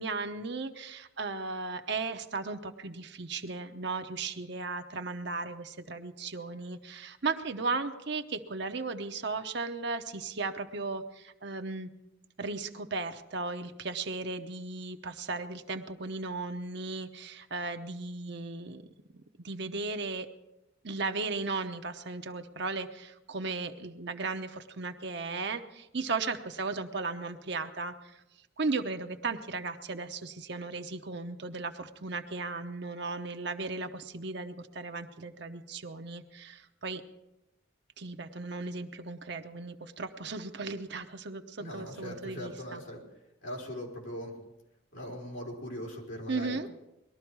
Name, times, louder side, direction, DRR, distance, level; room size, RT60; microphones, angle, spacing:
voice 1, 0.0-11.9 12.4-18.9 19.1-20.3 20.8-28.2 28.6-37.0 38.0-42.8 46.3-46.7, right 3 dB, 55° right, 6 dB, 0.9 m, -36 dB
voice 2, 41.6-43.0 43.4-44.3 44.9-46.7, equal, 65° left, -2 dB, 4.2 m, -40 dB
20.5 x 13.0 x 4.7 m, 0.92 s
head